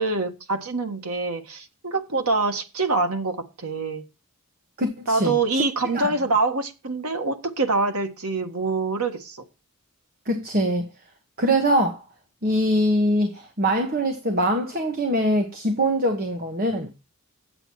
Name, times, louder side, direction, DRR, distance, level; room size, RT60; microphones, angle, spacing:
voice 1, 0.0-4.0 5.1-9.4, right 3 dB, 80° right, 1.5 m, -25 dB
voice 2, 4.8-5.6 5.9-6.1 10.3-10.9 11.4-12.0 12.4-16.9, equal, 45° right, 1.4 m, -23 dB
8.7 x 8.0 x 4.7 m
head